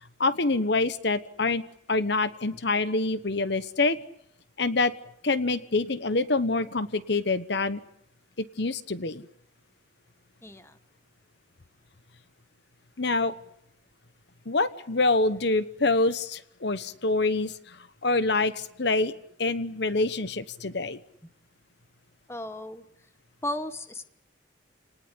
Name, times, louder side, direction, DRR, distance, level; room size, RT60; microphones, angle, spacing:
voice 1, 0.2-1.6 1.9-4.0 4.6-4.9 5.2-7.8 8.4-9.2 13.0-13.3 14.5-17.8 18.0-19.1 19.4-21.0, left 3 dB, 60° left, 13 dB, 1.1 m, -26 dB
voice 2, 10.4-10.8 22.3-22.8 23.4-24.1, left 1 dB, 15° left, 10 dB, 1.3 m, -35 dB
29.0 x 19.5 x 10.0 m, 0.75 s
head